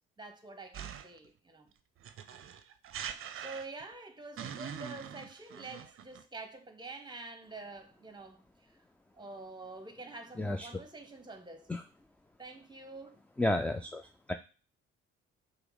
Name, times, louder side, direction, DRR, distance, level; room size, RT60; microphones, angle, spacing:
voice 1, 0.2-1.7 3.4-8.8 9.2-11.7 12.4-13.2, right 3 dB, 15° right, 1.0 m, -47 dB
sound 1, 0.7-1.3 2.0-3.9 4.4-6.2, right 8 dB, 45° right, 0.6 m, -43 dB
voice 2, 10.4-10.7 11.7-11.8 13.4-14.3, left 1 dB, 5° left, 0.3 m, -32 dB
5.6 x 2.1 x 3.9 m
hypercardioid pair, 60°, 31 cm